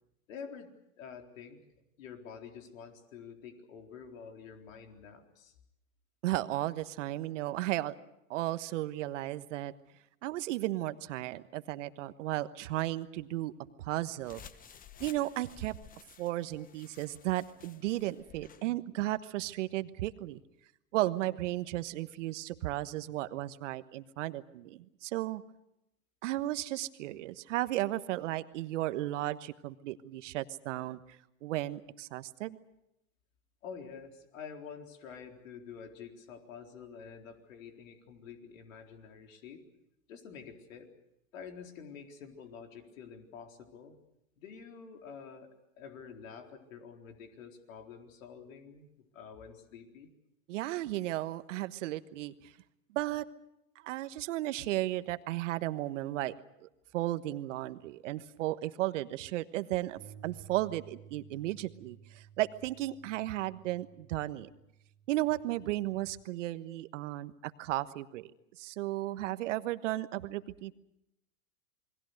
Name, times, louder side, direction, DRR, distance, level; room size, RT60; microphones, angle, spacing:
voice 1, 0.3-0.7 1.0-1.6 2.0-5.5 33.6-39.6 40.1-40.9 41.3-43.9 44.4-50.1, left 6 dB, 70° left, 4 dB, 4.1 m, -48 dB
voice 2, 6.2-7.9 8.3-9.7 10.2-13.5 13.8-14.4 15.0-15.8 16.2-20.4 20.9-25.4 26.2-31.0 31.4-32.6 50.5-52.5 52.9-53.2 53.8-56.3 56.6-56.7 56.9-64.5 65.1-68.3 68.6-70.7, right 16 dB, 60° right, 13 dB, 1.3 m, -34 dB
sound 1, 14.2-18.7, left 8 dB, 20° left, 1.0 m, -54 dB
sound 2, 60.0-66.2, right 9 dB, 40° right, 2.9 m, -55 dB
28.5 x 22.0 x 6.5 m, 0.85 s
hypercardioid pair, 105°, 42 cm